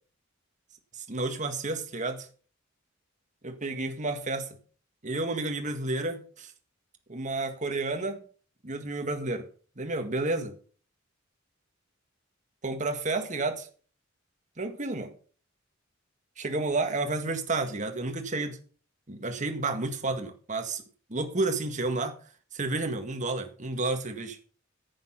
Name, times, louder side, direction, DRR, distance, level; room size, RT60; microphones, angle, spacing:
voice 1, 1.1-2.3 3.4-4.6 5.0-6.5 7.1-8.2 8.6-9.5 9.8-10.6 12.6-13.7 14.6-15.1 16.4-18.6 19.1-20.8 21.1-22.2 22.5-24.4, right 2 dB, 40° right, 1.8 m, -31 dB
10.5 x 8.8 x 5.8 m
head